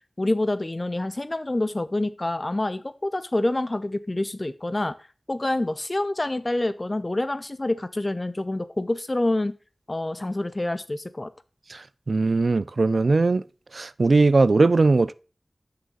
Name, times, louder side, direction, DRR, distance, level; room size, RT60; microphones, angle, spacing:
voice 1, 0.2-4.9 5.3-9.5 9.9-11.3, left 2 dB, 35° left, 0.6 m, -27 dB
voice 2, 11.7-13.4 13.7-15.1, right 3 dB, 70° right, 0.3 m, -20 dB
7.4 x 6.3 x 4.0 m
wide cardioid pair, 65°, 0 cm